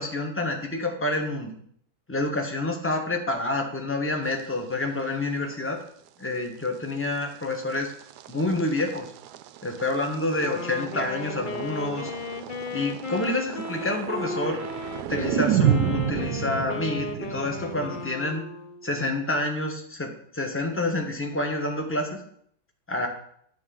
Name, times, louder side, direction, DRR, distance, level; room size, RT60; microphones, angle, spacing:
voice 1, 0.0-1.5 2.1-5.8 6.2-7.9 8.3-9.1 9.6-12.1 12.7-14.6 15.1-18.4 18.8-22.2 22.9-23.1, left 2 dB, 10° left, 3 dB, 1.1 m, -28 dB
sound 1, 4.3-4.4 5.5-5.6 6.1-6.2 7.2-18.1, right 11 dB, 75° right, 1.0 m, -31 dB
Wind instrument woodwind instrument, 10.4-19.0, left 4 dB, 60° left, 0.5 m, -35 dB
9.3 x 4.6 x 7.7 m, 0.66 s
omnidirectional pair, 2.0 m